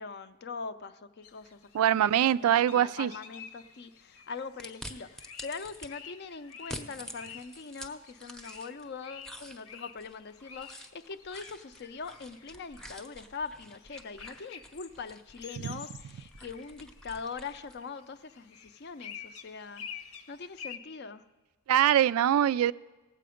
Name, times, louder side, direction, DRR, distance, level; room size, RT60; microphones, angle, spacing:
voice 1, 0.0-19.8 20.3-21.2, left 4 dB, 50° left, 12 dB, 0.5 m, -42 dB
sound 1, 1.2-20.8, left 7 dB, 85° left, 0.9 m, -50 dB
voice 2, 1.7-3.1 21.7-22.7, right 10 dB, 80° right, 17 dB, 0.3 m, -23 dB
sound 2, 4.6-5.9 6.5-8.9 9.2-17.8, equal, 5° left, 0.6 m, -48 dB
17.5 x 7.6 x 5.0 m, 1.2 s
head